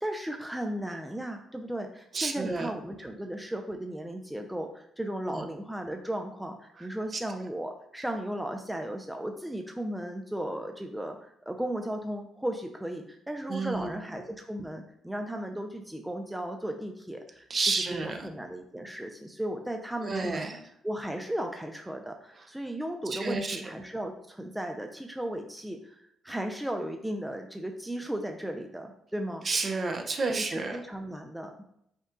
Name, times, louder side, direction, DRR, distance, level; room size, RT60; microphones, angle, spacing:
voice 1, 0.0-20.5 20.8-29.5 30.4-31.7, right 1 dB, 5° right, 3 dB, 0.4 m, -36 dB
voice 2, 2.1-2.7 5.3-5.4 7.1-7.2 13.5-13.9 17.5-18.3 20.0-20.6 23.1-23.6 29.4-30.8, right 3 dB, 40° right, 4 dB, 0.7 m, -30 dB
5.3 x 2.3 x 3.7 m, 0.74 s
cardioid pair, 90°, 0 cm